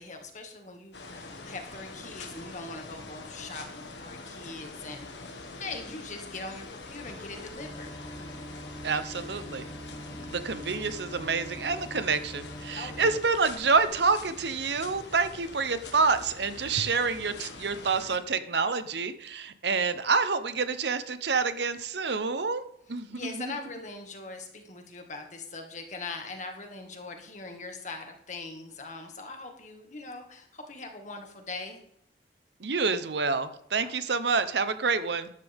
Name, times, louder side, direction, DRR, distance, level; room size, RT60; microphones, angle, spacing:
voice 1, 0.0-7.9 8.9-9.0 12.8-13.1 23.1-31.8 33.8-34.0, left 3 dB, 45° left, 3 dB, 2.0 m, -41 dB
sound 1, 0.9-18.2, left 3 dB, 80° left, 1.8 m, -44 dB
sound 2, 7.0-13.2, equal, 15° left, 1.9 m, -43 dB
voice 2, 8.8-9.7 10.3-22.6 22.9-23.5 32.6-35.3, right 4 dB, 70° right, 12 dB, 0.9 m, -28 dB
13.5 x 11.0 x 3.6 m, 0.72 s
head